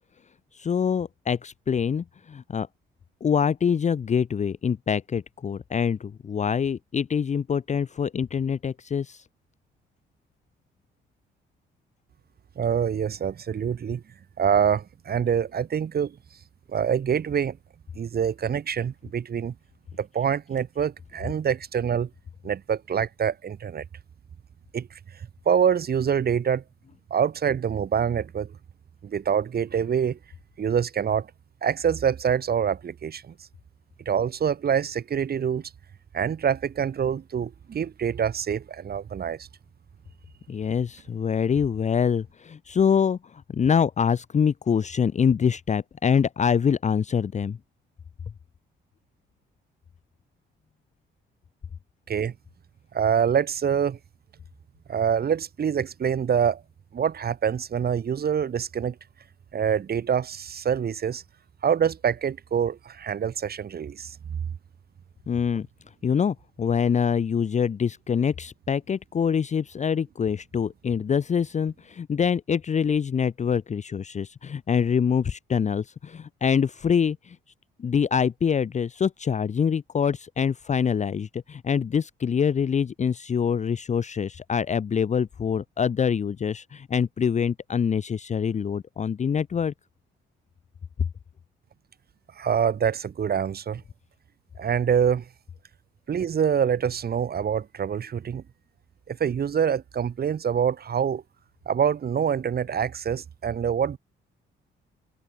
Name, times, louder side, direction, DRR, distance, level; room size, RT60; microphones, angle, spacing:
voice 1, 0.5-2.7 3.2-9.2 40.5-47.6 65.3-65.7 66.0-77.4 77.8-89.7, left 7 dB, 35° left, 0.7 m, -25 dB
voice 2, 12.6-14.0 14.4-16.2 16.7-17.6 18.0-19.5 20.0-22.1 22.4-23.8 24.7-25.0 25.5-26.6 27.1-28.5 29.0-30.2 30.6-31.3 31.6-33.3 34.1-35.7 36.1-39.5 52.1-52.3 52.9-54.0 54.9-56.6 56.9-59.0 59.5-61.2 61.6-64.4 92.4-93.8 94.6-95.3 96.1-98.4 99.1-101.2 101.7-104.0, right 8 dB, 50° right, 3.5 m, -25 dB
cardioid pair, 90°, 20 cm